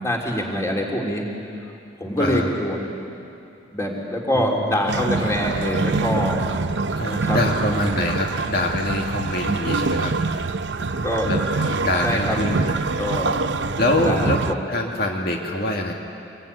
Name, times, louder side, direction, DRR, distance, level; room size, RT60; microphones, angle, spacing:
voice 1, 0.0-1.3 2.0-2.8 3.7-6.5 7.1-7.4 11.0-11.3 12.0-12.4 13.0-13.4 14.0-14.6, left 1 dB, 15° left, -1 dB, 3.4 m, -24 dB
voice 2, 2.2-2.5 4.3-5.1 7.0-10.4 11.2-12.6 12.9-13.0 13.8-15.9, left 1 dB, 55° left, 0 dB, 2.1 m, -25 dB
sound 1, 4.9-14.5, right 3 dB, 80° right, 0.7 m, -25 dB
25.5 x 22.0 x 9.7 m, 2.7 s
head